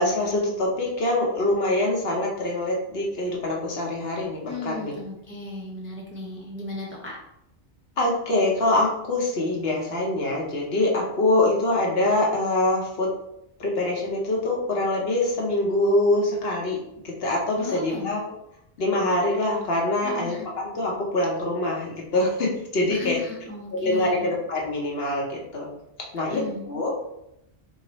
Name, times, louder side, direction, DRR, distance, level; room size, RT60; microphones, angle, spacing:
voice 1, 0.0-4.9 8.0-13.1 13.6-16.8 17.0-18.2 18.8-23.2 23.7-25.7 26.1-26.4 26.7-26.9, left 1 dB, 65° left, -1 dB, 1.0 m, -24 dB
voice 2, 4.5-7.2 17.6-18.1 20.0-20.5 22.9-24.2 26.3-26.6, left 2 dB, 15° right, -3 dB, 0.5 m, -35 dB
4.0 x 2.7 x 3.0 m, 0.82 s
omnidirectional pair, 1.2 m